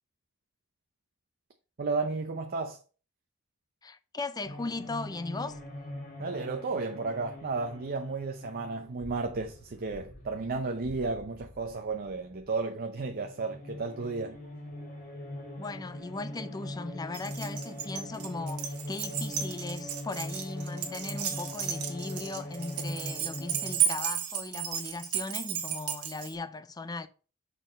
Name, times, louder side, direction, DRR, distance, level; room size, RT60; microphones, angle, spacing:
voice 1, 1.8-2.8 6.2-14.4, right 3 dB, 45° right, 0.6 m, -33 dB
voice 2, 3.8-5.6 15.6-27.1, left 3 dB, 15° left, 0.4 m, -38 dB
sound 1, 4.4-12.6 12.9-23.8, left 1 dB, 40° left, 1.9 m, -41 dB
Keys jangling, 17.1-26.3, right 9 dB, 75° right, 1.3 m, -33 dB
6.2 x 4.1 x 5.1 m
head